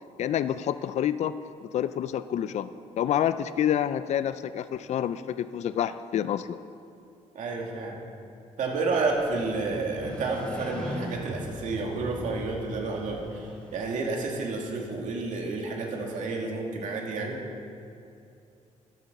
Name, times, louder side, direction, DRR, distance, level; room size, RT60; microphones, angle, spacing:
voice 1, 0.2-1.3 1.6-6.6, left 10 dB, 60° left, 13 dB, 0.4 m, -28 dB
voice 2, 7.3-8.0 8.6-17.4, right 3 dB, 75° right, 0 dB, 2.3 m, -30 dB
Motorcycle, 8.8-14.7, equal, 10° left, 3.0 m, -39 dB
12.5 x 12.0 x 6.0 m, 2.6 s
cardioid pair, 145°, 13 cm